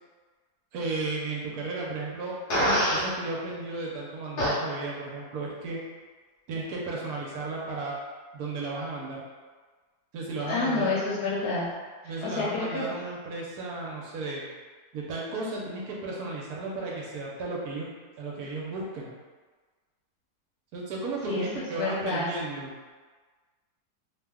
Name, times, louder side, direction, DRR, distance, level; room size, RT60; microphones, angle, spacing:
voice 1, 0.7-5.8 6.5-8.0 8.3-9.2 10.1-10.9 12.0-14.5 14.9-17.9 18.2-19.2 20.7-22.7, right 3 dB, 75° right, -3 dB, 1.1 m, -34 dB
Fart, 2.5-3.1 4.4-4.6, equal, 50° left, 1.1 m, -24 dB
voice 2, 10.4-11.7 12.0-12.9 21.3-22.3, left 3 dB, 70° left, -7 dB, 1.2 m, -29 dB
2.9 x 2.1 x 3.5 m, 1.4 s
omnidirectional pair, 1.7 m